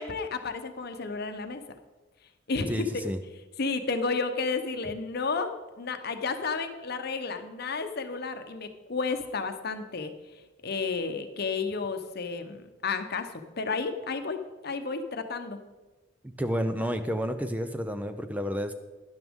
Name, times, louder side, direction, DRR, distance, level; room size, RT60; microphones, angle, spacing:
voice 1, 0.0-1.6 2.5-2.9 3.6-5.5 5.8-10.1 10.6-15.6, left 4 dB, 55° left, 8 dB, 0.8 m, -32 dB
voice 2, 2.7-3.2 16.2-18.7, equal, 10° right, 8 dB, 0.5 m, -30 dB
12.0 x 10.5 x 3.6 m, 1.2 s
head